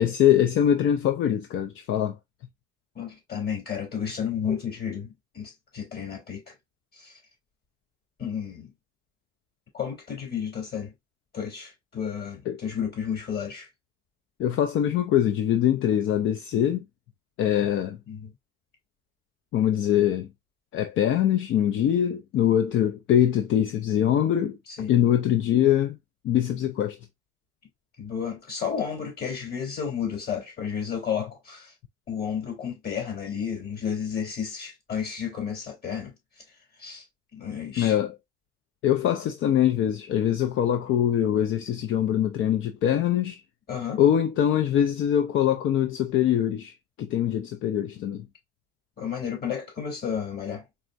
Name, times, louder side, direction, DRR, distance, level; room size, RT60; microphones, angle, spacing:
voice 1, 0.0-2.2 12.5-12.6 14.4-16.8 17.4-18.0 19.5-20.3 20.7-24.6 24.9-26.0 26.2-27.0 37.8-38.2 38.8-43.4 44.0-48.2, left 10 dB, 80° left, 0.5 m, -23 dB
voice 2, 2.9-6.4 7.0-7.1 8.2-8.7 9.7-10.9 11.3-13.7 18.1-18.3 24.8-24.9 28.0-31.7 32.1-36.1 36.8-37.0 37.3-37.9 43.7-44.0 49.0-50.6, left 7 dB, 55° left, 3.1 m, -32 dB
4.2 x 3.5 x 2.6 m
cardioid pair, 90°, 20 cm